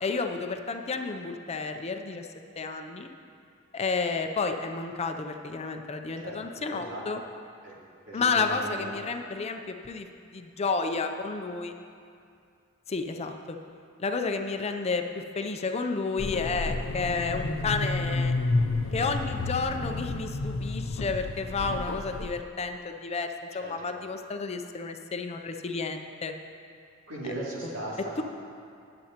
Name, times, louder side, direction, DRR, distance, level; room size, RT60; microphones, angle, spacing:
voice 1, 0.0-2.3 2.6-3.1 3.7-7.2 8.1-9.6 9.8-10.1 10.3-11.7 12.9-13.6 14.0-18.3 18.9-23.3 23.5-26.3, left 4 dB, 30° left, 6 dB, 0.5 m, -31 dB
voice 2, 6.2-7.0 7.6-7.7 8.1-8.9 23.6-23.8 27.1-28.1, right 1 dB, 80° right, -6 dB, 2.5 m, -38 dB
sound 1, 16.2-22.4, left 2 dB, 80° left, 0.5 m, -30 dB
18.0 x 7.7 x 2.9 m, 2.4 s
head